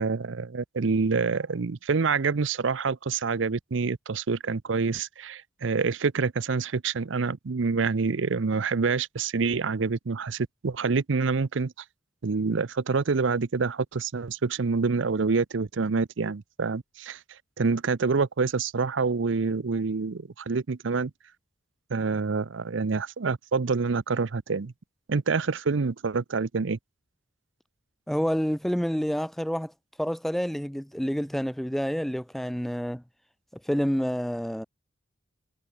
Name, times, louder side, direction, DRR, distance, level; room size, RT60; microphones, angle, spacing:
voice 1, 0.0-11.7 12.2-17.2 17.6-21.1 21.9-24.7 25.1-26.8, right 4 dB, 80° right, 0.6 m, -27 dB
voice 2, 28.1-29.7 30.0-33.0 33.7-34.7, equal, ahead, 0.3 m, -28 dB
head